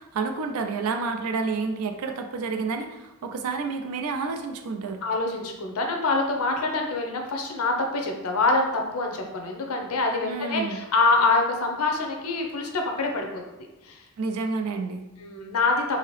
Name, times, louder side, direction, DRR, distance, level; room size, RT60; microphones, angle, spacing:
voice 1, 0.0-5.0 10.2-10.8 14.2-15.0, right 4 dB, 80° right, 6 dB, 0.4 m, -29 dB
voice 2, 5.0-13.4 13.8-14.0 15.2-16.0, left 3 dB, 70° left, 3 dB, 0.6 m, -25 dB
2.8 x 2.8 x 3.1 m, 1.0 s
head